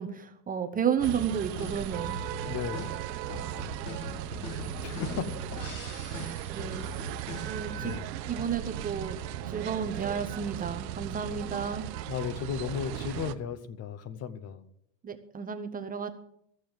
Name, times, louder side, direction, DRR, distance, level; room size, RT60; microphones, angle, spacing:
voice 1, 0.0-2.2 6.2-6.9 7.4-7.9 8.3-9.2 9.5-11.9 15.0-16.1, right 7 dB, 20° right, 7 dB, 0.7 m, -32 dB
sound 1, 1.0-8.0, left 3 dB, 50° left, 4.1 m, -41 dB
sound 2, 1.0-13.4, right 11 dB, 85° right, 0.9 m, -37 dB
voice 2, 2.5-3.0 4.8-5.6 7.8-8.1 12.1-14.7, left 7 dB, 30° left, 14 dB, 0.8 m, -35 dB
14.0 x 7.0 x 7.7 m, 0.74 s
supercardioid pair, 135°, 49 cm